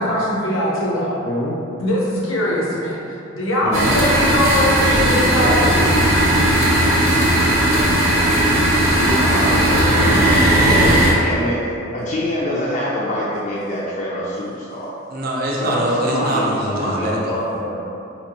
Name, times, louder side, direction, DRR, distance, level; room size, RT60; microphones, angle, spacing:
voice 1, 0.0-1.2 1.8-3.0 3.3-5.7, left 1 dB, 85° left, -5 dB, 0.8 m, -21 dB
voice 2, 1.2-1.6 3.6-4.0 9.0-10.2 10.6-14.9 15.6-17.8, left 1 dB, 40° left, -7 dB, 0.5 m, -25 dB
sound 1, 3.7-11.1, right 1 dB, 85° right, 0.9 m, -16 dB
voice 3, 5.3-6.1 7.7-8.5 10.2-10.6 15.1-17.4, right 1 dB, 50° right, -3 dB, 0.6 m, -24 dB
4.2 x 2.9 x 2.9 m, 2.6 s
head